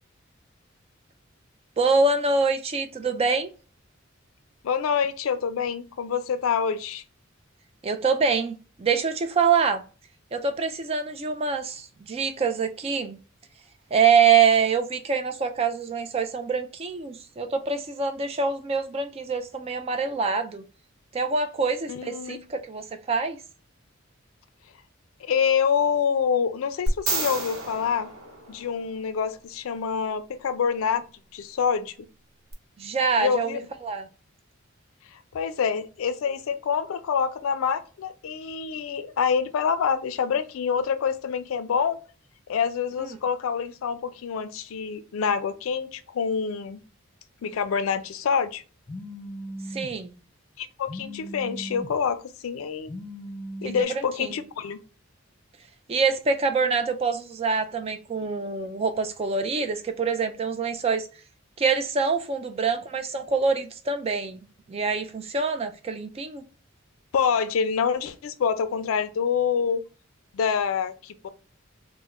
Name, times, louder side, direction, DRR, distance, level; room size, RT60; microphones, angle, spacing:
voice 1, 1.8-3.5 7.8-9.8 10.3-13.2 13.9-20.6 21.1-23.4 32.8-34.1 43.0-43.2 49.7-50.1 53.6-54.4 55.9-61.1 61.6-64.4 64.7-66.4, right 5 dB, 30° right, 0.3 m, -25 dB
voice 2, 4.6-7.0 21.9-22.4 25.2-28.1 28.5-31.1 31.3-31.9 33.2-33.6 35.1-42.0 42.5-46.8 47.4-48.6 50.6-52.9 53.6-54.8 67.1-69.8 70.3-71.3, left 6 dB, 80° left, 0.4 m, -26 dB
sound 1, 26.9-29.1 32.5-32.6, right 2 dB, 80° right, 0.9 m, -30 dB
Telephone, 48.9-49.9 50.9-51.9 52.9-53.8, equal, 25° left, 0.5 m, -37 dB
3.5 x 2.1 x 3.0 m
head